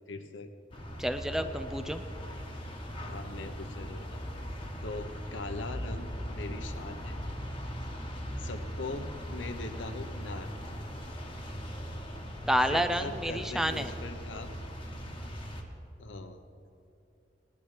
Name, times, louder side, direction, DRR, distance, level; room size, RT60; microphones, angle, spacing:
voice 1, 0.1-0.5 1.4-1.6 3.0-4.2 4.8-7.2 8.4-10.5 12.5-14.6 16.0-16.4, left 3 dB, 80° left, 8 dB, 0.8 m, -41 dB
sound 1, 0.7-15.6, equal, 25° left, 1.1 m, -39 dB
voice 2, 1.0-2.0 12.5-13.9, equal, ahead, 8 dB, 0.3 m, -29 dB
19.5 x 11.5 x 3.3 m, 2.7 s
head